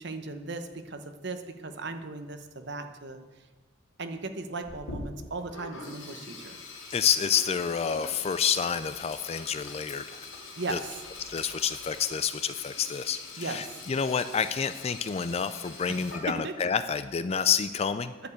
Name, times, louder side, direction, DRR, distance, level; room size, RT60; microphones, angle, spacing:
voice 1, 0.0-3.2 4.0-6.6 10.6-10.9 13.4-13.6 16.3-16.5, right 3 dB, 60° right, 7 dB, 1.0 m, -37 dB
Sink (filling or washing), 4.6-16.7, left 3 dB, 70° left, 2.2 m, -43 dB
voice 2, 6.9-10.2 10.7-10.8 11.2-18.1, left 7 dB, 30° left, 12 dB, 0.3 m, -28 dB
10.5 x 6.9 x 8.2 m, 1.3 s
head